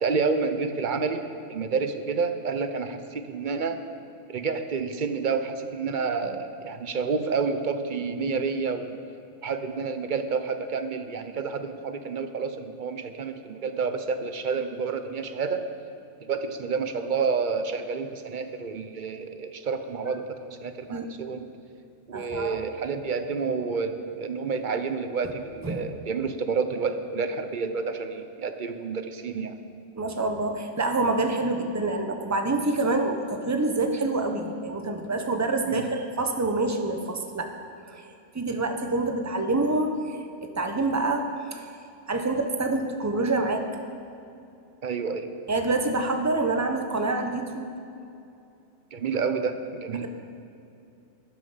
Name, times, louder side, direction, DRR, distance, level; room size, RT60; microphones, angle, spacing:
voice 1, 0.0-1.2 1.5-3.8 4.3-9.0 9.4-15.6 16.2-21.5 22.1-29.5 35.6-35.8 38.5-38.6 44.8-45.3 48.9-50.1, right 5 dB, 45° right, 8 dB, 0.8 m, -29 dB
voice 2, 22.1-22.6 25.6-25.8 30.0-37.5 37.9-41.7 42.1-43.6 45.5-47.7, right 2 dB, 15° right, 5 dB, 0.8 m, -27 dB
13.0 x 10.0 x 5.6 m, 2.7 s
omnidirectional pair, 1.3 m